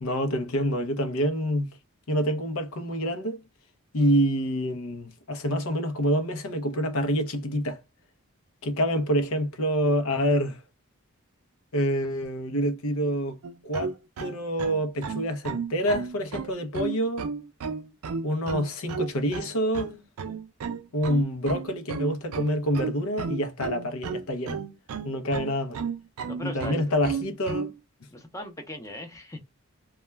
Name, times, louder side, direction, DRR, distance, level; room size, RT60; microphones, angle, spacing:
voice 1, 0.0-1.7 2.1-3.4 3.9-7.8 8.6-10.6 11.7-13.4 13.6-17.3 18.2-19.9 20.9-24.6 25.0-25.8 26.4-27.7, equal, 75° left, 0.6 m, -27 dB
sound 1, 13.4-27.7, right 5 dB, 90° right, 0.4 m, -33 dB
voice 2, 26.2-26.8 28.1-29.4, left 1 dB, 15° left, 0.6 m, -38 dB
2.3 x 2.1 x 3.1 m
head